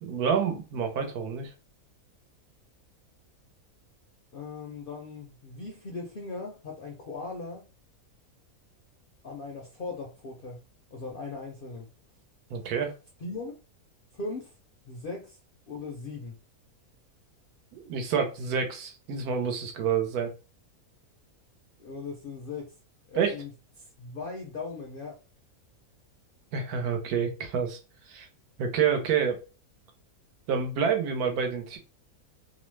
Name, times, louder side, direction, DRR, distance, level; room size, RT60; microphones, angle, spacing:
voice 1, 0.0-1.5 12.5-12.9 17.7-20.3 23.1-23.3 26.5-27.8 28.1-28.3 28.6-29.4 30.5-31.8, right 6 dB, 85° right, 1.2 m, -28 dB
voice 2, 4.3-7.7 9.2-10.6 10.9-11.9 13.2-13.6 14.1-14.5 14.9-15.4 15.7-16.4 21.8-22.7 23.1-23.5 23.8-25.2, left 3 dB, 70° left, 0.5 m, -39 dB
2.8 x 2.1 x 3.1 m
omnidirectional pair, 1.6 m